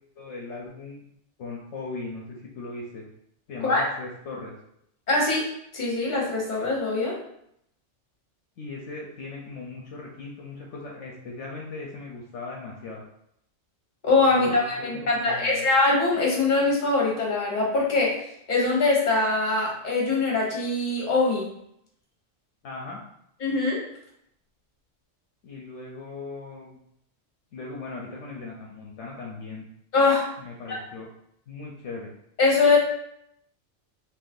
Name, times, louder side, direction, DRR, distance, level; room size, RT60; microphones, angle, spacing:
voice 1, 0.2-1.0 1.4-3.0 3.5-4.5 8.6-13.0 14.3-15.7 22.6-23.0 25.4-26.8 27.5-29.7 30.4-31.1 31.5-32.1, left 3 dB, 75° left, -1 dB, 0.9 m, -38 dB
voice 2, 5.1-5.5 5.7-7.2 14.0-18.2 18.5-21.5 23.4-23.8 29.9-30.3 32.4-32.8, left 3 dB, 40° left, -3 dB, 1.1 m, -22 dB
3.7 x 2.8 x 2.6 m, 0.74 s
omnidirectional pair, 1.2 m